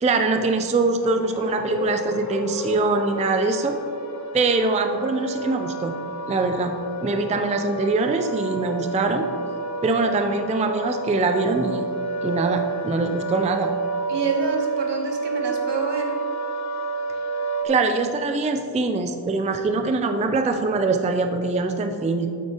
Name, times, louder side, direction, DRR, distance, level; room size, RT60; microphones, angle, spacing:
voice 1, 0.0-3.8 4.3-5.9 6.3-6.7 7.0-9.3 9.8-11.9 12.2-13.7 17.6-22.3, right 3 dB, 15° right, 6 dB, 0.3 m, -23 dB
sound 1, 1.0-17.7, right 3 dB, 40° left, 0.8 m, -30 dB
voice 2, 14.1-16.2, right 4 dB, 70° right, 1 dB, 1.2 m, -27 dB
9.1 x 8.0 x 2.9 m, 2.5 s
wide cardioid pair, 145°, 44 cm